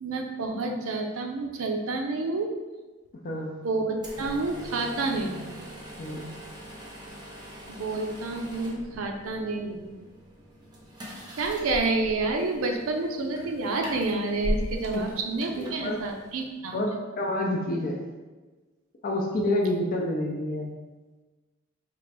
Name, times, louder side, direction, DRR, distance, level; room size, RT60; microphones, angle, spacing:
voice 1, 0.0-2.5 3.6-5.5 7.7-9.9 11.4-17.0, right 3 dB, 85° right, 3 dB, 0.5 m, -29 dB
sound 1, 4.0-16.5, equal, 20° right, 0.7 m, -39 dB
voice 2, 6.0-6.4 14.9-15.1 15.6-16.0 16.7-18.0 19.0-20.7, left 1 dB, 45° left, 0 dB, 0.4 m, -28 dB
4.4 x 2.5 x 3.3 m, 1.3 s
head